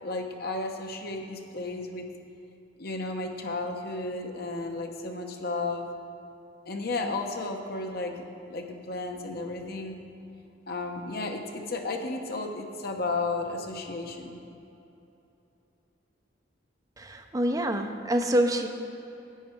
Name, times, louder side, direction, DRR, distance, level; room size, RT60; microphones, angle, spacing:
voice 1, 0.0-2.0 2.8-5.9 6.7-10.0 10.7-14.4, left 3 dB, 55° left, 4 dB, 0.9 m, -33 dB
voice 2, 17.0-18.7, right 1 dB, 20° right, 5 dB, 0.6 m, -26 dB
10.5 x 8.5 x 4.5 m, 2.9 s
head